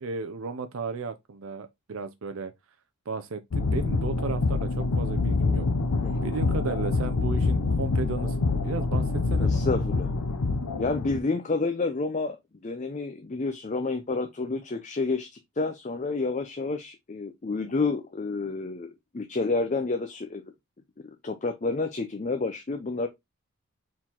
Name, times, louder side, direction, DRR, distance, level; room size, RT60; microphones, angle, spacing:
voice 1, 0.0-2.5 3.1-5.7 6.2-9.8, right 4 dB, 60° right, 0.5 m, -34 dB
sound 1, 3.5-11.2, left 3 dB, 85° left, 0.6 m, -26 dB
voice 2, 9.4-10.1 10.8-12.4 12.6-20.4 21.2-23.1, left 3 dB, 30° left, 0.5 m, -29 dB
4.4 x 3.8 x 2.9 m
head